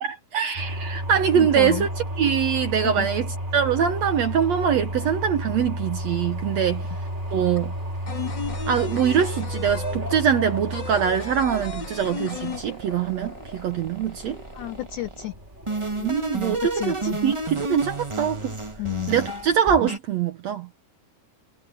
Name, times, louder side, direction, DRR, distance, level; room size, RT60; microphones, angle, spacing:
voice 1, 0.0-1.9 2.2-6.9 7.3-7.7 8.7-14.4 16.0-17.0 17.2-18.6 19.1-20.7, right 8 dB, 70° right, 1.6 m, -23 dB
sound 1, 0.5-19.6, equal, 15° right, 3.3 m, -33 dB
voice 2, 1.4-1.9 2.8-3.1 14.6-15.3 16.7-17.2 18.8-19.2, left 15 dB, 70° left, 2.0 m, -31 dB
sound 2, 6.3-6.4 6.7-13.3 13.5-13.6 13.9-14.7, left 5 dB, 30° left, 3.1 m, -35 dB
sound 3, 12.2-15.2 15.7-20.0, right 2 dB, 50° right, 0.3 m, -31 dB
omnidirectional pair, 4.3 m